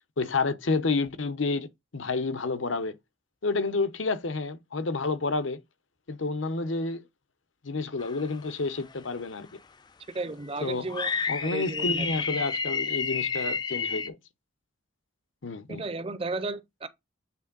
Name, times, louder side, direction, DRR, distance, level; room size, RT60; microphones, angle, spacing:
voice 1, 0.2-1.7 1.9-3.0 3.4-5.6 6.1-7.0 7.6-9.5 10.6-10.9 11.3-14.2 15.4-15.8, left 3 dB, 80° left, 0.9 m, -29 dB
sound 1, 8.0-8.5 8.9-9.0 10.9-14.1, left 5 dB, 20° left, 0.4 m, -30 dB
voice 2, 10.1-11.1 11.4-12.1 15.7-16.9, right 3 dB, 30° right, 0.5 m, -34 dB
8.6 x 3.5 x 3.9 m
head